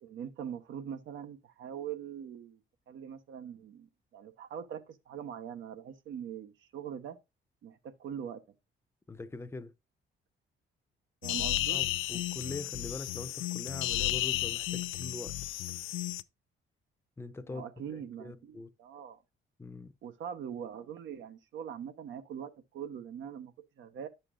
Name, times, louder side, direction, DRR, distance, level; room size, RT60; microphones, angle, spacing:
voice 1, 0.0-2.6 2.9-7.2 7.6-8.4 11.2-11.8 17.5-19.2 20.0-24.1, right 8 dB, 75° right, 1.1 m, -42 dB
voice 2, 9.1-9.7 11.7-15.4 17.2-18.7 19.6-19.9, left 3 dB, 10° left, 0.7 m, -43 dB
sound 1, 11.2-16.2, left 16 dB, 85° left, 0.5 m, -33 dB
10.0 x 6.8 x 2.5 m
cardioid pair, 90°, 20 cm